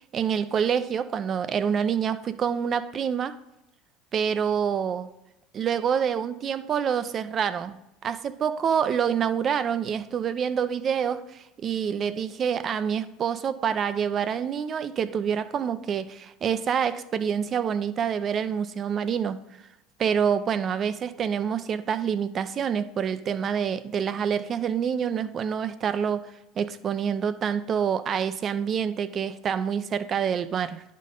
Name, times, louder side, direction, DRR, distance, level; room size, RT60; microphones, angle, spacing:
voice 1, 0.1-3.4 4.1-5.1 5.5-7.8 8.0-19.4 20.0-26.3 26.6-30.8, right 7 dB, 40° right, 13 dB, 0.5 m, -27 dB
11.0 x 3.7 x 3.8 m, 0.91 s
hypercardioid pair, 85°, 0 cm